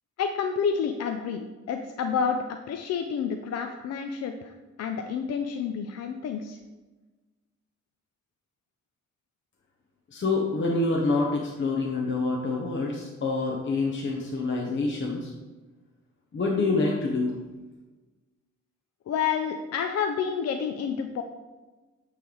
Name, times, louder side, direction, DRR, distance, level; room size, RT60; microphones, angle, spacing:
voice 1, 0.2-6.6 19.1-21.2, left 6 dB, 60° left, 6 dB, 0.5 m, -29 dB
voice 2, 10.1-15.3 16.3-17.3, left 3 dB, 40° left, -1 dB, 1.0 m, -26 dB
8.8 x 3.4 x 3.9 m, 1.2 s
cardioid pair, 75°, 29 cm